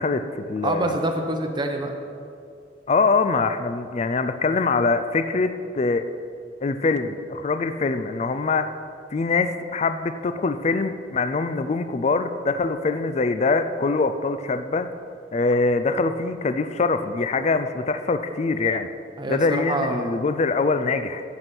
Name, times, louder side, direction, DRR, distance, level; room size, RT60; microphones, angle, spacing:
voice 1, 0.0-0.9 2.9-6.0 6.6-8.7 9.1-14.9 15.3-18.9 19.3-21.2, left 3 dB, 35° left, 10 dB, 0.4 m, -23 dB
voice 2, 0.6-1.9 19.2-20.1, right 1 dB, 25° right, 3 dB, 0.8 m, -26 dB
9.7 x 8.0 x 6.0 m, 2.3 s
head